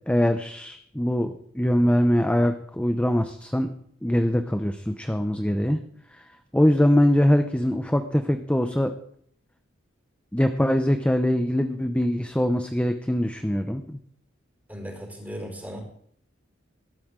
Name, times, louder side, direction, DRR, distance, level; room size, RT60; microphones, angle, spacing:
voice 1, 0.1-3.7 4.0-5.8 6.5-8.9 10.3-14.0, equal, 5° left, 7 dB, 0.7 m, -22 dB
voice 2, 14.7-15.8, equal, 10° right, 1 dB, 4.8 m, -36 dB
20.5 x 13.0 x 3.8 m, 0.64 s
head